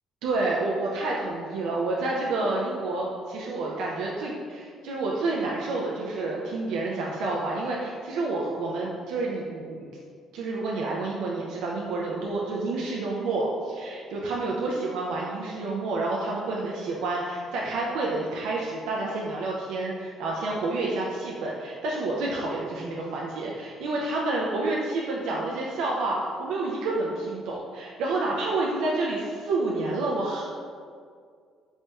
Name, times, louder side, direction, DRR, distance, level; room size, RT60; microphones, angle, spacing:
voice 1, 0.2-9.9 10.3-30.4, right 2 dB, 85° right, -3 dB, 0.3 m, -29 dB
3.1 x 2.9 x 2.2 m, 2.1 s
cardioid pair, 130°, 0 cm